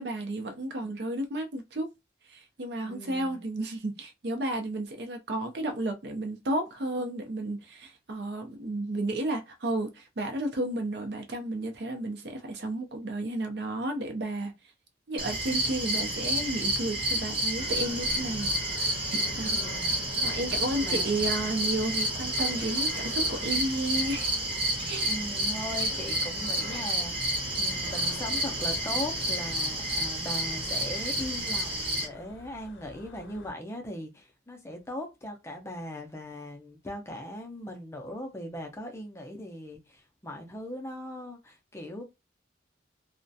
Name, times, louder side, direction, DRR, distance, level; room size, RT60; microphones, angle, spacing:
voice 1, 0.0-1.9 2.3-14.5 15.1-18.5 18.9-24.3 24.8-25.1, right 1 dB, 60° right, 0.5 m, -32 dB
voice 2, 2.9-3.4 19.5-20.0 20.8-21.3 25.0-42.0, left 1 dB, 15° left, 0.4 m, -39 dB
sound 1, 15.2-32.1, right 1 dB, 30° right, 0.7 m, -30 dB
sound 2, 17.6-33.5, left 2 dB, 75° left, 0.5 m, -46 dB
2.3 x 2.1 x 2.6 m
head